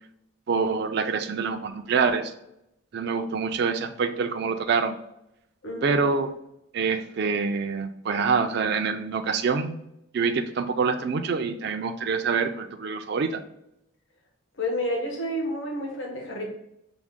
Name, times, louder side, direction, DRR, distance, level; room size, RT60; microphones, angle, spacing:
voice 1, 0.5-2.3 2.9-5.0 5.8-6.3 6.7-9.8 10.1-13.4, right 5 dB, 50° right, 7 dB, 0.3 m, -26 dB
voice 2, 5.6-6.0 14.6-16.5, left 1 dB, 65° left, 0 dB, 1.0 m, -30 dB
5.9 x 2.1 x 3.6 m, 0.81 s
head